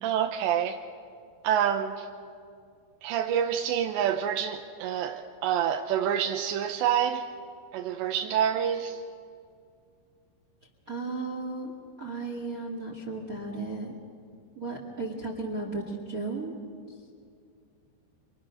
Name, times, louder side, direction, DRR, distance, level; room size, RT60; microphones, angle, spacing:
voice 1, 0.0-0.8 1.4-2.1 3.0-7.3 7.7-9.0, right 9 dB, 80° right, 3.0 m, -27 dB
voice 2, 10.9-11.7 12.0-13.9 14.5-16.5, right 3 dB, 40° right, 1.3 m, -34 dB
30.0 x 26.0 x 6.4 m
omnidirectional pair, 5.3 m